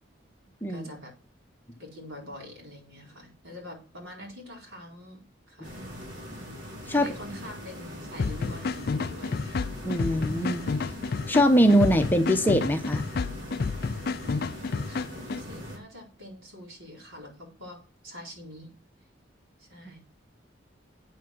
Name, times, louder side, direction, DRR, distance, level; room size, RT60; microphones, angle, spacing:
voice 1, 0.7-1.1 1.8-5.7 6.9-9.6 14.8-17.8 18.0-18.7 19.6-20.0, left 1 dB, 80° right, -1 dB, 4.5 m, -45 dB
sound 1, 5.6-15.8, equal, 60° right, 4.7 m, -41 dB
sound 2, 8.2-15.4, left 4 dB, 50° left, 0.4 m, -30 dB
voice 2, 9.8-10.9 11.3-13.1, equal, 10° left, 5 dB, 0.9 m, -22 dB
8.3 x 7.5 x 6.1 m, 0.37 s
head